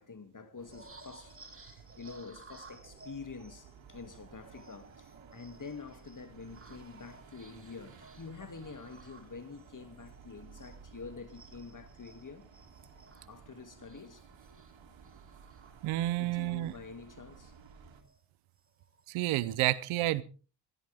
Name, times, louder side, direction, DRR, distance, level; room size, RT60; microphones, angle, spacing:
voice 1, 0.0-12.5 13.3-14.2 16.2-17.5, left 4 dB, 40° left, 2.5 m, -47 dB
sound 1, 0.6-18.0, right 6 dB, 70° right, 3.3 m, -56 dB
sound 2, 0.7-11.0 11.3-16.2 16.6-16.8 17.1-18.2 18.6-19.0, right 3 dB, 25° right, 3.5 m, -58 dB
voice 2, 15.8-16.7 19.1-20.2, right 16 dB, 90° right, 0.8 m, -30 dB
22.0 x 13.5 x 3.6 m
supercardioid pair, 45°, 47 cm